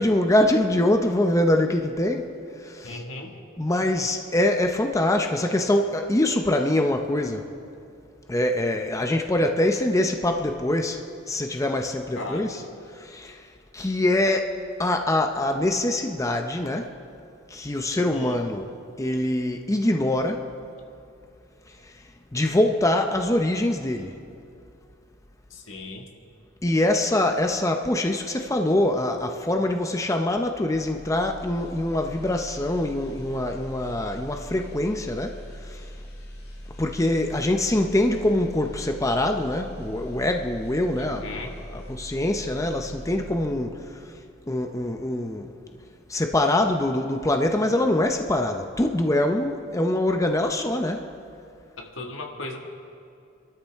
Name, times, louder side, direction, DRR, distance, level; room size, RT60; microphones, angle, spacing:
voice 1, 0.0-2.3 2.6-3.0 3.6-7.5 8.3-12.6 12.9-13.4 13.7-14.5 14.8-16.9 17.5-18.7 19.0-20.4 22.3-24.2 26.6-35.4 36.8-43.8 44.5-45.5 46.1-51.0, left 1 dB, 15° left, 4 dB, 0.7 m, -24 dB
voice 2, 2.8-3.3 12.1-12.5 17.9-18.4 25.5-26.0 41.0-41.5 51.8-52.6, left 2 dB, 80° left, 2 dB, 1.8 m, -36 dB
sound 1, 30.7-43.9 44.2-44.4, equal, 55° left, 2.2 m, -41 dB
26.5 x 13.0 x 3.6 m, 2.4 s
head